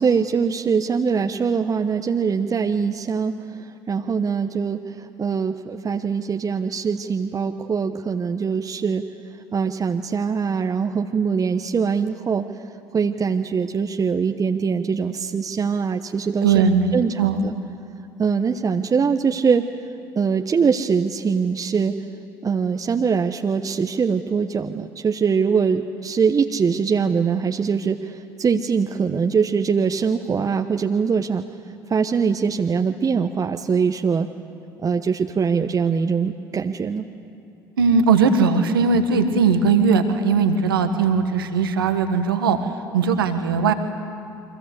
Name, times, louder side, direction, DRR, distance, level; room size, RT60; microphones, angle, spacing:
voice 1, 0.0-3.3 3.6-9.0 9.5-12.4 12.9-16.6 16.9-17.5 18.2-19.7 20.1-22.0 22.4-31.4 31.9-34.3 34.8-37.1, right 6 dB, 30° right, 5 dB, 1.1 m, -22 dB
voice 2, 16.4-17.4 37.8-42.6 42.9-43.7, right 5 dB, 80° right, 7 dB, 1.6 m, -19 dB
29.5 x 23.5 x 8.2 m, 2.7 s
hypercardioid pair, 60°, 12 cm